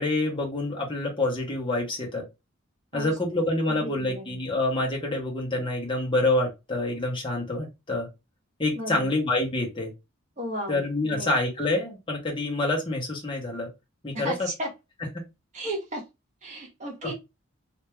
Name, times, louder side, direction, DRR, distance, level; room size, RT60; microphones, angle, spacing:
voice 1, 0.0-2.2 2.9-8.1 8.6-9.9 10.7-13.7 14.0-14.5 17.0-17.1, left 2 dB, 25° left, 1.2 m, -27 dB
voice 2, 3.8-4.4 8.7-9.1 10.4-11.3 14.1-14.7 15.5-16.0 16.4-17.1, right 1 dB, 35° right, 1.4 m, -34 dB
3.4 x 2.8 x 3.0 m
head